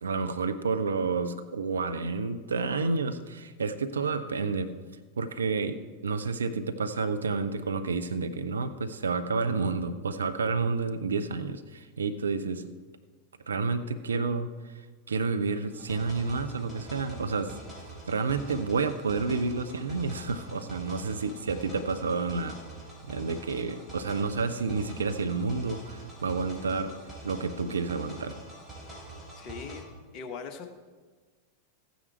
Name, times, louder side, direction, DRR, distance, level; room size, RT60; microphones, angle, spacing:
voice 1, 0.0-4.7 5.2-12.7 13.5-14.7 15.1-17.6 18.1-22.6 23.0-26.9 27.2-28.4, right 4 dB, 70° right, 10 dB, 0.7 m, -30 dB
sound 1, 15.7-29.8, right 2 dB, ahead, 4.5 m, -45 dB
voice 2, 29.4-29.8 30.1-30.7, left 5 dB, 35° left, 6 dB, 1.2 m, -40 dB
14.0 x 9.4 x 4.5 m, 1.4 s
figure-of-eight pair, 90°, 0 cm